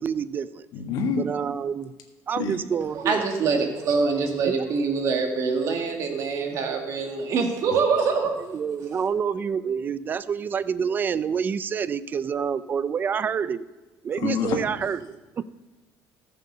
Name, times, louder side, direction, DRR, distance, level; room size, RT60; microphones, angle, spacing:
voice 1, 0.0-0.7 1.2-1.9 2.3-3.2 4.5-4.6 8.4-13.7 14.0-15.4, right 7 dB, 30° right, 16 dB, 0.4 m, -28 dB
voice 2, 0.7-1.3 2.3-2.6 7.7-7.8 14.2-14.6, left 6 dB, 70° left, 2 dB, 1.5 m, -27 dB
voice 3, 3.0-8.3, right 5 dB, 50° right, 3 dB, 2.0 m, -24 dB
14.5 x 6.8 x 5.3 m, 1.2 s
cardioid pair, 145°, 7 cm